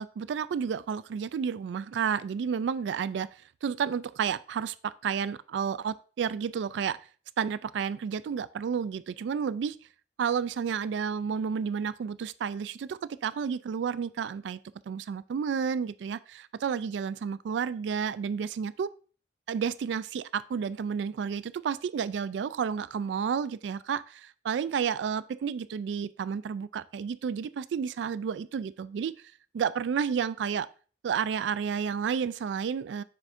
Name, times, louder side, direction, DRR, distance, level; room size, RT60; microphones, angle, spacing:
voice 1, 0.0-3.3 3.6-7.0 7.4-9.8 10.2-14.6 14.9-18.9 19.5-29.1 29.5-30.7 31.0-33.0, right 7 dB, 85° right, 16 dB, 0.3 m, -31 dB
7.5 x 6.3 x 2.6 m, 0.39 s
head